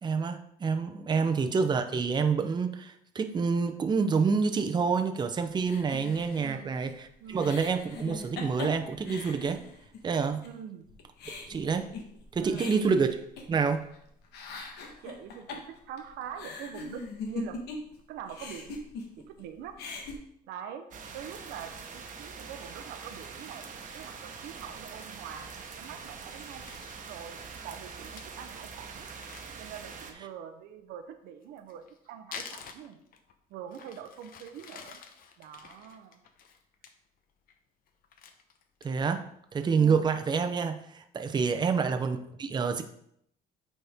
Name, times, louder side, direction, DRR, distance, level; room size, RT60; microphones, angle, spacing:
voice 1, 0.0-9.6 10.0-10.5 11.4-11.9 12.3-13.1 13.5-13.9 38.8-39.2 39.5-42.8, right 5 dB, 25° right, 6 dB, 0.6 m, -27 dB
sound 1, 5.7-10.1 10.4-10.5 10.9-14.0 14.2-18.0 18.3-19.4 19.7-20.2, left 3 dB, 75° left, 1.3 m, -41 dB
voice 2, 6.4-6.8 7.2-7.6 10.4-10.9 12.4-13.0 15.0-17.6 18.1-18.8 19.2-19.8 20.5-20.9 21.1-23.7 23.9-26.6 27.1-29.1 29.6-33.0 33.5-35.0 35.4-36.2 39.7-40.1, right 8 dB, 85° right, 8 dB, 0.7 m, -44 dB
sound 2, 20.9-30.1, right 5 dB, 50° right, 1.0 m, -44 dB
Crumpling crinkling, 26.3-27.0 27.6-27.7 27.9-28.0 28.2-28.3 28.6-28.7 29.0-30.3 31.4-33.4 33.7-36.9 37.3-37.6 37.9-39.1 39.5-39.6 40.0-40.4, left 6 dB, 60° left, 0.8 m, -48 dB
9.1 x 4.2 x 3.5 m, 0.72 s
cardioid pair, 110°, 17 cm